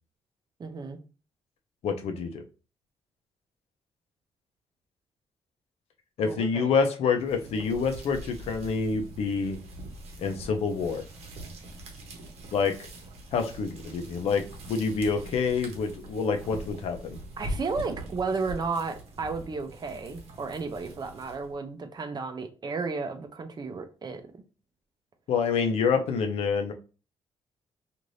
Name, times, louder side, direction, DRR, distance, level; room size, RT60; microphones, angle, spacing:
voice 1, 0.6-1.0 6.2-6.7 7.5-7.8 17.4-24.4, right 4 dB, 45° right, 7 dB, 0.6 m, -33 dB
voice 2, 1.8-2.4 6.2-9.6 10.2-11.0 12.5-12.8 13.3-17.2 25.3-26.7, left 5 dB, 80° left, 5 dB, 0.6 m, -27 dB
sound 1, 7.1-21.6, right 1 dB, 85° right, 0.9 m, -43 dB
2.6 x 2.5 x 3.2 m, 0.34 s
cardioid pair, 85°, 10 cm